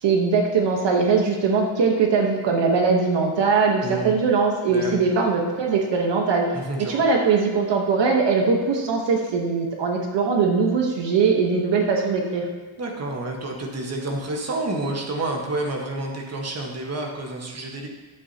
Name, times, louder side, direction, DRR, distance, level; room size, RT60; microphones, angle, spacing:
voice 1, 0.0-6.5 6.8-12.5, right 4 dB, 60° right, 1 dB, 1.2 m, -21 dB
voice 2, 3.8-4.2 4.7-5.0 6.5-7.0 12.8-17.9, right 2 dB, 30° right, 1 dB, 1.4 m, -29 dB
12.0 x 8.5 x 2.9 m, 1.3 s
cardioid pair, 150°, 48 cm